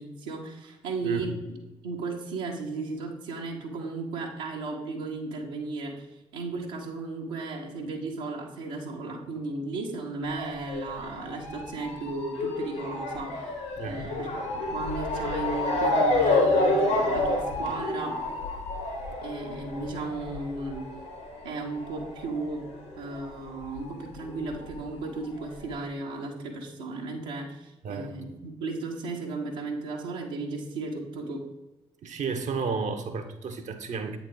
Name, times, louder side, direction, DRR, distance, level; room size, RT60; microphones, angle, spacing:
voice 1, 0.0-1.4 1.8-6.1 6.3-13.6 13.8-14.3 14.5-18.2 19.2-20.8 21.4-22.6 23.0-31.4, right 3 dB, 75° right, 0 dB, 1.0 m, -35 dB
Motor vehicle (road) / Siren, 10.2-23.3 23.5-24.7 25.3-25.4 25.7-25.8, left 2 dB, 80° left, 1.7 m, -29 dB
voice 2, 13.8-14.1 27.8-28.1 32.0-34.2, right 5 dB, 50° right, 8 dB, 0.8 m, -32 dB
8.0 x 4.0 x 3.8 m, 1.1 s
figure-of-eight pair, 40°, 16 cm